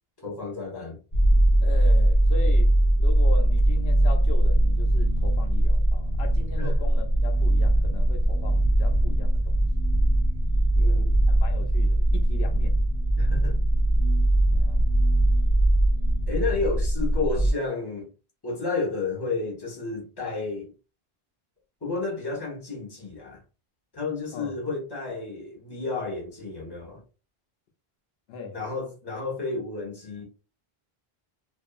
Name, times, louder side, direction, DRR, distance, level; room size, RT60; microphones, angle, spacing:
voice 1, 0.2-1.0 6.6-6.8 10.7-11.1 13.2-13.6 16.3-18.1 18.4-20.7 21.8-23.4 23.9-27.0 28.5-30.2, left 3 dB, 25° left, 1.1 m, -31 dB
sound 1, 1.1-17.5, right 1 dB, 40° left, 0.9 m, -21 dB
voice 2, 1.6-2.7 3.0-9.6 10.8-11.0 11.4-12.8 13.1-13.3 14.5-14.8 24.3-24.5 28.3-28.6, left 5 dB, 85° left, 0.8 m, -39 dB
2.6 x 2.5 x 2.4 m
omnidirectional pair, 1.0 m